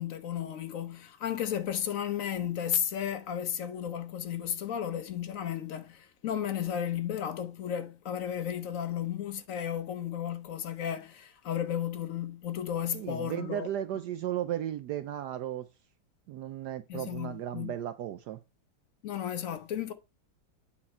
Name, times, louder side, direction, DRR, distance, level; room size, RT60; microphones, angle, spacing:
voice 1, 0.0-13.7 16.9-17.7 19.0-19.9, left 9 dB, 60° left, 0.9 m, -34 dB
voice 2, 12.9-15.7 16.3-18.4, right 11 dB, 75° right, 0.9 m, -35 dB
8.7 x 4.2 x 4.3 m
omnidirectional pair, 2.2 m